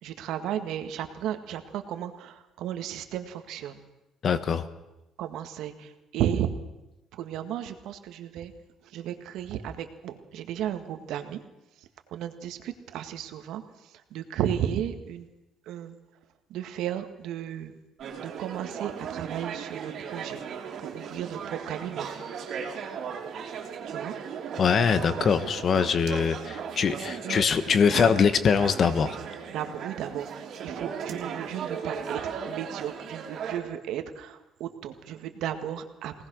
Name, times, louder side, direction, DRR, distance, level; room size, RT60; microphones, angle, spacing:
voice 1, 0.0-3.8 5.2-6.5 7.1-8.5 8.8-11.4 12.1-15.3 15.6-15.9 16.5-17.7 18.2-20.4 20.8-22.5 23.8-24.2 27.2-27.5 29.5-36.1, right 10 dB, 75° right, 8 dB, 1.8 m, -34 dB
voice 2, 4.2-4.7 24.6-29.2, left 6 dB, 40° left, 12 dB, 1.3 m, -23 dB
sound 1, 18.0-33.6, right 6 dB, 55° right, 3.4 m, -37 dB
24.0 x 18.5 x 6.3 m, 0.98 s
cardioid pair, 140°, 0 cm